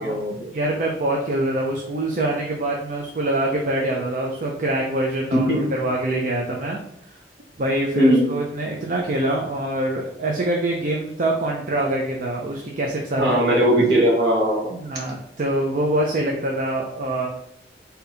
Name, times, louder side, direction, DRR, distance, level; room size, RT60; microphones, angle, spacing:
voice 1, 0.0-0.5 5.3-5.6 7.9-8.3 13.2-14.7, equal, 60° right, -2 dB, 1.4 m, -19 dB
voice 2, 0.5-6.8 7.6-13.4 14.7-17.3, right 1 dB, 45° right, -1 dB, 0.5 m, -24 dB
4.0 x 2.8 x 4.0 m, 0.75 s
head